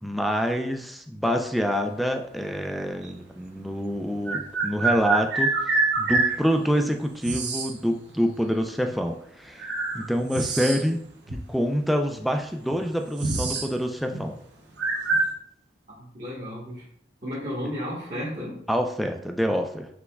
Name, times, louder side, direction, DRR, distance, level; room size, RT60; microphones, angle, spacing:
voice 1, 0.0-9.6 9.9-11.0 11.3-14.4 18.7-19.9, equal, ahead, 4 dB, 0.3 m, -26 dB
sound 1, 3.0-3.1 4.2-6.4 7.2-7.7 8.9-9.0 9.6-11.0 11.3-11.4 12.2-12.3 12.6-13.7 14.0-14.2 14.8-15.3, right 3 dB, 75° right, 0.9 m, -26 dB
voice 2, 15.9-16.8 17.2-18.6, equal, 40° right, -7 dB, 1.1 m, -33 dB
6.1 x 3.5 x 2.2 m, 0.68 s
head